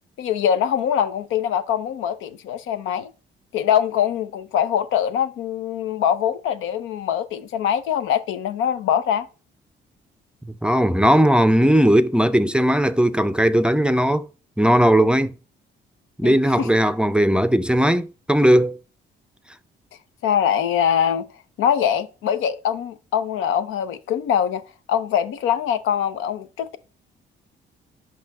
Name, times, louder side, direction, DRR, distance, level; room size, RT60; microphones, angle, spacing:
voice 1, 0.2-3.1 3.5-9.3 16.2-16.7 20.2-21.3 21.6-24.6 24.9-26.8, left 9 dB, 90° left, 0.7 m, -23 dB
voice 2, 10.6-14.3 14.6-15.4 16.2-18.8, equal, 5° right, 0.4 m, -17 dB
5.5 x 5.5 x 4.2 m
cardioid pair, 90°, 20 cm